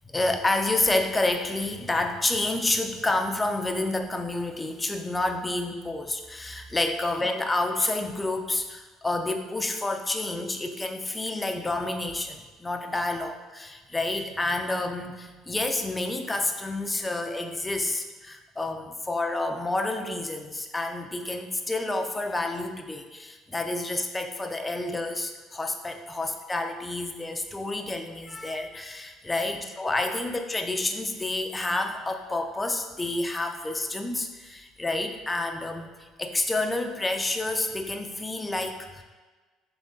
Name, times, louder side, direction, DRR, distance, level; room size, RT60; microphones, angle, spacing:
voice 1, 0.1-39.0, left 2 dB, 15° left, 5 dB, 0.5 m, -29 dB
3.6 x 3.2 x 3.9 m, 1.3 s
supercardioid pair, 80°, 0 cm